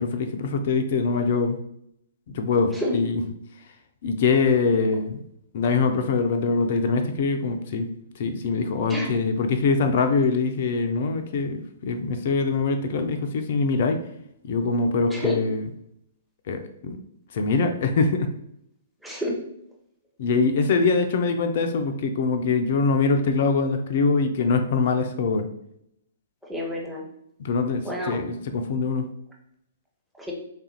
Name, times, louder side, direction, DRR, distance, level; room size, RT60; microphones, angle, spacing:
voice 1, 0.0-1.6 2.3-3.2 3.6-3.7 4.0-5.2 5.5-7.9 8.2-14.0 14.4-15.6 16.5-17.0 17.3-18.3 20.2-25.5 27.4-29.0, left 4 dB, 45° left, 6 dB, 0.3 m, -23 dB
voice 2, 19.0-19.3 26.5-27.0 27.8-28.2 30.2-30.3, equal, 5° right, -3 dB, 0.7 m, -29 dB
3.4 x 2.4 x 2.8 m, 0.74 s
figure-of-eight pair, 115°, 0 cm